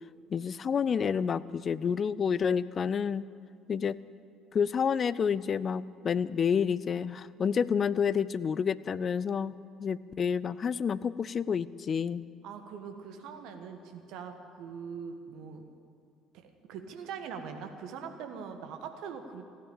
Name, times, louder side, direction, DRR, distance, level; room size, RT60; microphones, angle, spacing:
voice 1, 0.3-3.2 3.7-4.0 4.5-9.5 9.8-12.2, left 7 dB, 40° left, 18 dB, 0.4 m, -29 dB
voice 2, 12.4-15.6 16.3-19.4, right 6 dB, 60° right, 6 dB, 1.4 m, -42 dB
15.0 x 10.5 x 8.6 m, 2.4 s
figure-of-eight pair, 50°, 0 cm